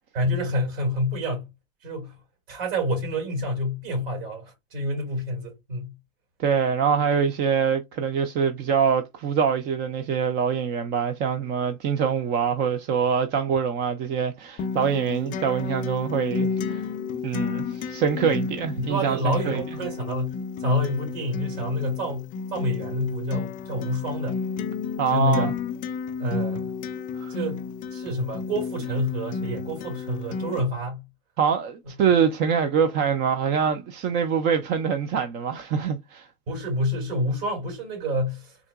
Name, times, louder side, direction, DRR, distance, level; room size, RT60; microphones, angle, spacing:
voice 1, 0.1-1.5 1.8-2.1 2.5-5.9 18.2-18.3 18.8-24.4 25.1-25.5 26.2-26.7 27.3-27.6 27.9-31.1 36.5-38.6, left 1 dB, 65° right, 2.6 m, -28 dB
voice 2, 6.4-16.9 17.2-19.6 25.0-25.5 27.1-27.3 31.4-36.3, right 7 dB, 35° right, 0.4 m, -24 dB
Acoustic guitar, 14.6-30.6, left 5 dB, 25° left, 0.4 m, -32 dB
3.6 x 2.8 x 2.3 m
hypercardioid pair, 125°, 32 cm